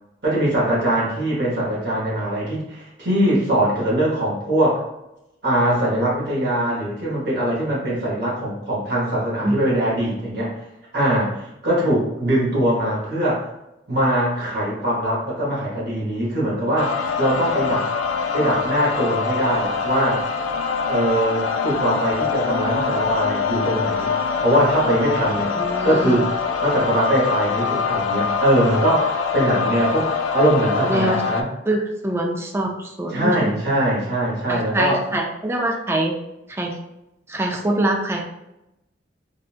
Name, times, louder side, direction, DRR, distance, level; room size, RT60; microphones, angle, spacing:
voice 1, 0.2-4.8 5.4-10.5 10.9-13.5 13.9-17.9 18.3-20.3 20.9-24.1 24.4-25.5 25.8-26.3 26.6-31.5 33.1-35.0, right 1 dB, 55° right, -6 dB, 1.1 m, -21 dB
sound 1, 16.8-31.4, left 5 dB, 75° left, 0.3 m, -24 dB
voice 2, 25.4-26.2 30.9-31.2 31.7-33.6 34.5-36.1 36.5-36.7 37.3-38.2, right 1 dB, 15° right, 1 dB, 0.3 m, -24 dB
3.8 x 2.3 x 2.4 m, 0.90 s
head